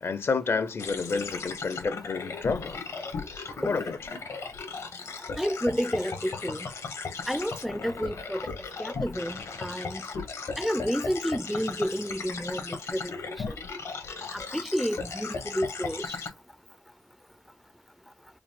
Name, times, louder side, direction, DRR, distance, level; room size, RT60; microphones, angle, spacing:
voice 1, 0.0-2.8 3.4-4.0, left 4 dB, 55° left, 0.6 m, -30 dB
sound 1, 0.8-16.3, left 4 dB, 75° left, 1.2 m, -37 dB
voice 2, 5.4-6.7 7.3-8.5 8.8-10.0 10.6-13.1 13.5-13.6 14.3-16.2, equal, ahead, 0.4 m, -30 dB
4.8 x 2.1 x 3.6 m
cardioid pair, 95°, 5 cm